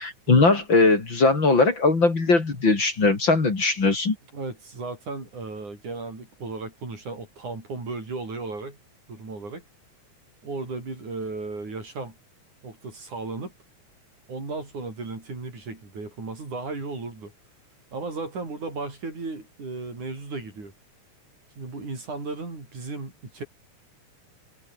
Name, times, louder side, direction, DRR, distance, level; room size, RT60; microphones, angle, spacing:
voice 1, 0.0-4.2, left 3 dB, 40° left, 4.1 m, -20 dB
voice 2, 4.3-8.8 9.1-9.6 10.4-12.2 12.6-13.5 14.3-17.3 17.9-20.7 21.6-23.4, right 3 dB, 75° right, 9.3 m, -35 dB
omnidirectional pair, 3.5 m